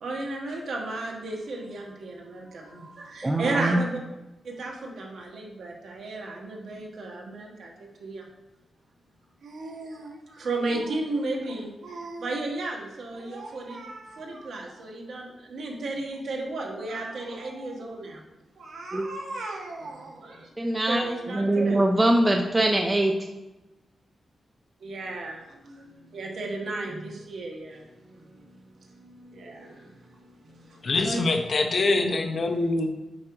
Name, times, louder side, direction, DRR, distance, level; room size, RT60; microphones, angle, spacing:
voice 1, 0.0-4.0 4.4-8.2 9.4-18.2 18.5-20.5 20.9-21.8 24.8-27.9 28.1-28.3 29.0-29.9 30.5-31.2, right 2 dB, 65° right, 0 dB, 1.2 m, -34 dB
voice 2, 3.2-3.8 18.9-19.1 20.6-21.0 21.3-23.1, right 1 dB, 15° right, 2 dB, 0.4 m, -22 dB
voice 3, 30.8-32.9, left 3 dB, 45° left, 5 dB, 0.6 m, -24 dB
7.6 x 4.9 x 3.0 m, 1.0 s
wide cardioid pair, 170°, 0 cm